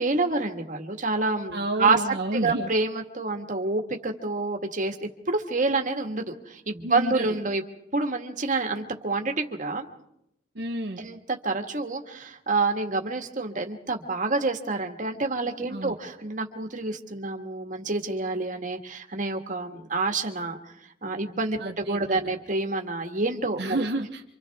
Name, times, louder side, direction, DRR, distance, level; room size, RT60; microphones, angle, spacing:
voice 1, 0.0-2.0 2.3-5.0 5.3-7.6 7.9-9.9 11.0-11.2 11.4-20.6 21.0-23.8, right 3 dB, 45° right, 4 dB, 1.7 m, -28 dB
voice 2, 1.5-2.7 6.8-7.2 10.5-11.1 15.7-16.0 21.6-22.2 23.6-24.2, right 1 dB, 60° right, 1 dB, 1.0 m, -30 dB
28.5 x 25.5 x 3.6 m, 0.80 s
head